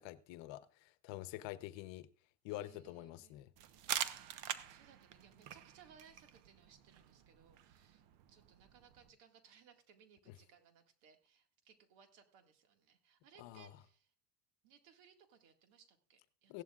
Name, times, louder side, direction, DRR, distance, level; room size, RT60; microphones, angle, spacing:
voice 1, 0.0-2.1 2.4-3.5 13.4-13.7 16.5-16.6, left 15 dB, 65° left, 0.9 m, -47 dB
voice 2, 2.5-3.4 4.1-14.1 14.6-16.6, right 7 dB, 75° right, 2.1 m, -65 dB
sound 1, 3.6-9.1, right 10 dB, 60° right, 1.1 m, -45 dB
16.5 x 11.5 x 2.4 m
supercardioid pair, 100°, 48 cm